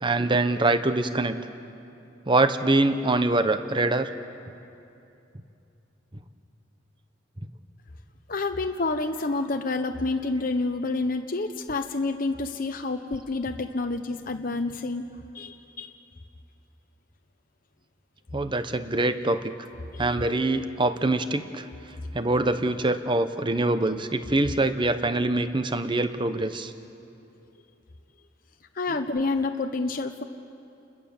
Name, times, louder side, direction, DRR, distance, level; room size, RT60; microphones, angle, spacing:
voice 1, 0.0-1.4 2.3-4.1 18.3-19.5 20.0-21.6 22.1-26.7 28.9-29.0, right 2 dB, 25° right, 10 dB, 0.9 m, -24 dB
voice 2, 8.3-15.1 15.3-15.9 19.9-20.2 28.7-30.2, left 3 dB, 45° left, 5 dB, 0.9 m, -28 dB
30.0 x 21.0 x 7.2 m, 2.7 s
head